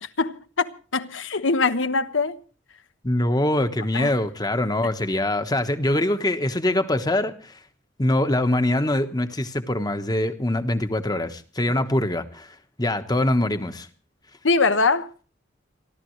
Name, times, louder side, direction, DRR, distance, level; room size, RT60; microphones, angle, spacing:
voice 1, 0.0-2.4 3.9-4.1 14.4-15.2, left 4 dB, 85° left, 1.1 m, -23 dB
voice 2, 3.0-7.6 8.0-13.9, left 1 dB, 20° left, 1.2 m, -23 dB
29.0 x 12.5 x 3.2 m
head